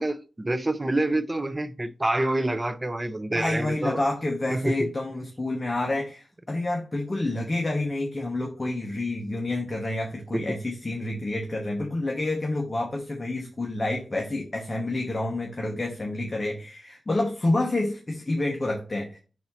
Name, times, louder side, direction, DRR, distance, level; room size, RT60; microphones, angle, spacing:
voice 1, 0.0-4.0 4.5-4.9 10.3-10.4, right 1 dB, 20° right, 0.4 m, -27 dB
voice 2, 3.3-19.2, left 2 dB, 30° left, 1.0 m, -28 dB
5.8 x 4.1 x 4.1 m
wide cardioid pair, 115°, 0 cm